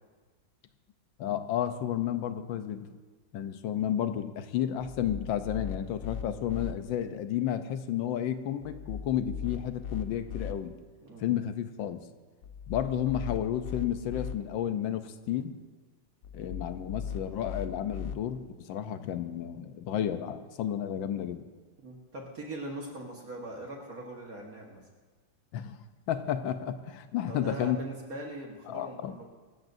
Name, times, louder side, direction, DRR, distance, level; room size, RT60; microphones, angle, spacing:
voice 1, 1.2-2.9 3.3-10.8 11.2-12.0 12.7-15.6 16.3-21.5 25.5-25.8 26.1-27.8 28.7-29.1, left 10 dB, 80° left, 10 dB, 1.5 m, -32 dB
sound 1, 4.8-6.7 8.6-10.5 12.4-14.3 16.2-18.2, left 7 dB, 60° left, 0.9 m, -38 dB
voice 2, 11.0-11.4 21.8-24.8 27.2-29.3, right 1 dB, 50° right, -1 dB, 1.9 m, -41 dB
25.0 x 13.5 x 2.7 m, 1.4 s
omnidirectional pair, 2.1 m